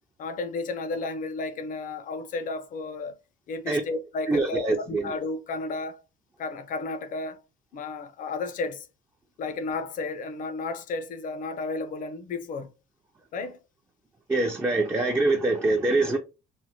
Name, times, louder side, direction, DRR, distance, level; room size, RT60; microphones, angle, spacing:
voice 1, 0.2-3.1 3.5-6.0 6.4-7.4 7.7-8.9 9.4-12.7 13.3-13.6, left 3 dB, 50° left, 0.6 m, -33 dB
voice 2, 4.3-5.1 14.3-16.2, right 2 dB, 15° right, 0.4 m, -24 dB
3.2 x 2.1 x 2.7 m
cardioid pair, 110°, 17 cm